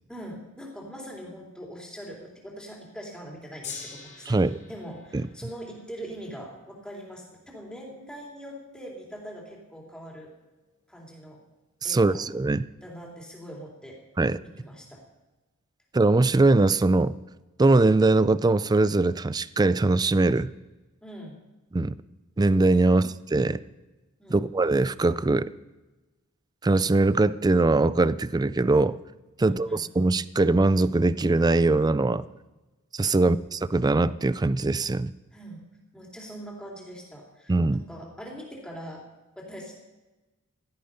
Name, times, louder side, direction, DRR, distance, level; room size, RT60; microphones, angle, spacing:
voice 1, 0.1-10.3 10.9-11.4 11.8-12.2 12.8-14.0 14.6-15.0 21.0-21.3 22.8-23.1 24.2-24.4 29.4-29.9 35.3-35.7 35.9-39.1 39.3-39.7, equal, 5° left, -2 dB, 3.4 m, -42 dB
Gong, 3.6-10.0 10.8-10.9, left 5 dB, 30° left, 2.6 m, -47 dB
voice 2, 4.3-4.6 11.8-12.7 14.2-14.4 15.9-17.2 17.6-20.5 21.7-21.9 22.4-23.6 24.3-25.5 26.6-29.0 29.4-32.2 32.9-35.1 37.5-37.8, right 2 dB, 20° right, 17 dB, 0.4 m, -22 dB
16.5 x 12.5 x 5.5 m, 1.1 s
head